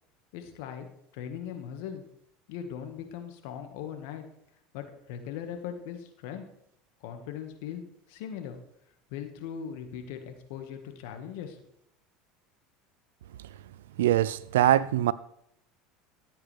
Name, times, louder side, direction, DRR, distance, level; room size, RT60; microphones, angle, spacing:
voice 1, 0.3-0.9 1.1-2.0 2.5-4.2 4.7-6.5 7.0-7.8 8.1-8.6 9.1-11.6, left 8 dB, 70° left, 1.6 m, -39 dB
voice 2, 14.0-15.1, right 13 dB, 85° right, 0.4 m, -23 dB
14.0 x 8.3 x 3.4 m
hypercardioid pair, 85°, 0 cm